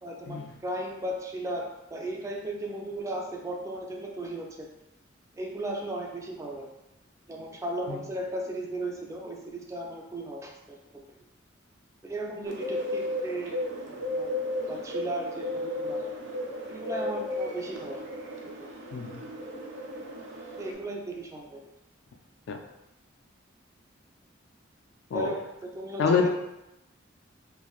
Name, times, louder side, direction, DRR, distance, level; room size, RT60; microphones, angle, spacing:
voice 1, 0.0-4.7 5.4-6.7 7.3-10.8 12.0-14.3 14.7-16.0 16.7-18.0 18.4-18.7 20.6-21.6 25.1-25.4 25.7-26.3, right 1 dB, 15° right, 0 dB, 0.3 m, -36 dB
Bird, 12.5-20.7, left 1 dB, 80° right, 0.5 m, -34 dB
voice 2, 26.0-26.3, left 5 dB, 60° left, 3 dB, 0.3 m, -26 dB
3.0 x 2.4 x 2.3 m, 0.92 s
head